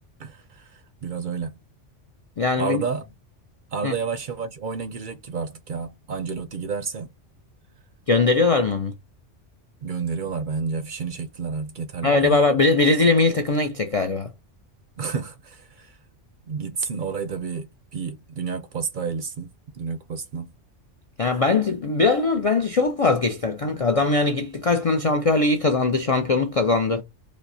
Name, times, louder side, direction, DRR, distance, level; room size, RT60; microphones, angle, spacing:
voice 1, 0.2-1.6 2.6-3.1 3.7-7.1 9.8-12.4 15.0-16.0 16.5-20.5, right 5 dB, 55° right, 0.6 m, -30 dB
voice 2, 2.4-2.8 3.8-3.9 8.1-8.9 12.0-14.3 21.2-27.0, left 3 dB, 60° left, 0.3 m, -21 dB
5.1 x 2.0 x 2.6 m
omnidirectional pair, 1.2 m